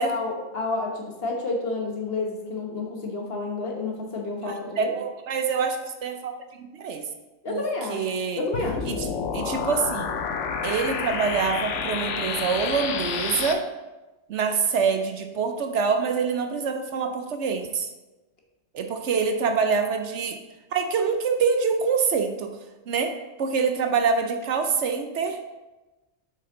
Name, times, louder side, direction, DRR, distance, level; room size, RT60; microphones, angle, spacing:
voice 1, 0.0-4.9 7.4-8.9, left 3 dB, 50° left, 0 dB, 1.3 m, -30 dB
voice 2, 4.4-6.3 6.6-7.0 7.5-7.6 7.9-8.4 8.9-9.1 9.3-10.1 10.6-13.6 14.3-17.9 18.7-20.4 20.7-22.5 22.9-23.1 23.4-25.4, right 5 dB, 65° right, 6 dB, 0.9 m, -25 dB
sound 1, 8.5-13.5, left 6 dB, 70° left, 0.9 m, -29 dB
7.8 x 5.5 x 3.8 m, 1.1 s
omnidirectional pair, 1.3 m